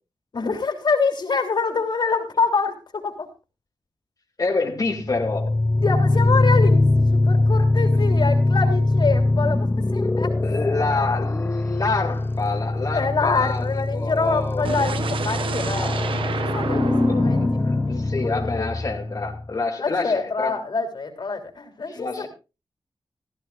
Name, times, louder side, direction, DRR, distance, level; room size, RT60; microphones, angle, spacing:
voice 1, 0.3-3.3 5.8-10.3 12.9-15.9 16.3-18.7 19.8-22.3, left 4 dB, 60° left, 4 dB, 3.3 m, -26 dB
voice 2, 4.4-5.6 10.4-13.7 13.9-14.7 17.1-20.6 21.9-22.3, left 3 dB, 45° left, -3 dB, 2.4 m, -27 dB
sound 1, 4.9-19.5, left 2 dB, 25° left, 0.6 m, -22 dB
sound 2, 14.6-18.6, right 5 dB, 85° right, 1.0 m, -31 dB
16.5 x 14.0 x 2.5 m, 0.29 s
wide cardioid pair, 90°, 9 cm